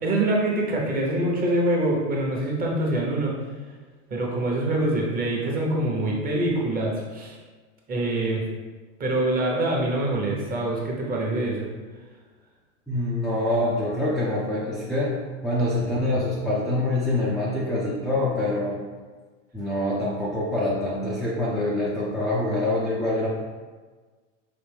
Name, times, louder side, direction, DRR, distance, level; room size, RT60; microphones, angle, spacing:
voice 1, 0.0-3.3 4.1-7.4 7.9-8.4 9.0-11.7, right 1 dB, 25° right, -2 dB, 0.9 m, -25 dB
voice 2, 12.9-15.1 15.4-18.8 19.5-23.3, left 1 dB, ahead, -8 dB, 0.4 m, -25 dB
5.0 x 2.6 x 3.4 m, 1.4 s
supercardioid pair, 125°, 37 cm